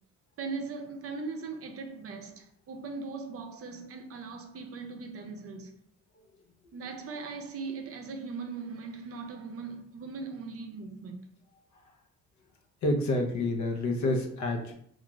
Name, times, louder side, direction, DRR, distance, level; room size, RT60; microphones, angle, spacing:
voice 1, 0.4-5.7 6.7-11.2, right 4 dB, 50° right, 0.5 m, -39 dB
voice 2, 12.8-14.7, left 2 dB, 70° left, 0.7 m, -28 dB
2.4 x 2.3 x 3.0 m
cardioid pair, 90°, 30 cm